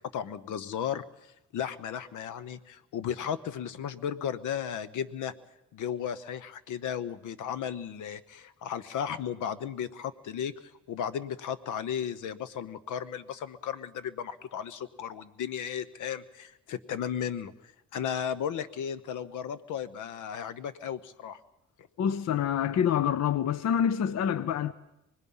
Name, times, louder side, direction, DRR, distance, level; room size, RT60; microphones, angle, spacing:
voice 1, 0.1-5.3 5.7-10.5 10.9-17.5 17.9-21.4, left 8 dB, 80° left, 1.0 m, -35 dB
voice 2, 22.0-24.7, left 8 dB, 60° left, 0.8 m, -26 dB
26.0 x 20.0 x 5.6 m
cardioid pair, 90°, 30 cm